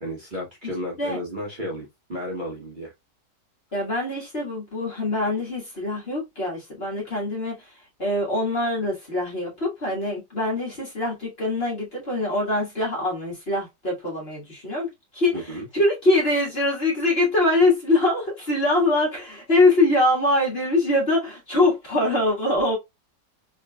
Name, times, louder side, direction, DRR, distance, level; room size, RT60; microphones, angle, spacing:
voice 1, 0.0-2.9 15.3-15.7, equal, 30° right, 1.3 m, -33 dB
voice 2, 3.7-7.7 8.0-22.8, left 2 dB, 35° left, 2.0 m, -23 dB
3.8 x 3.6 x 2.3 m
omnidirectional pair, 1.9 m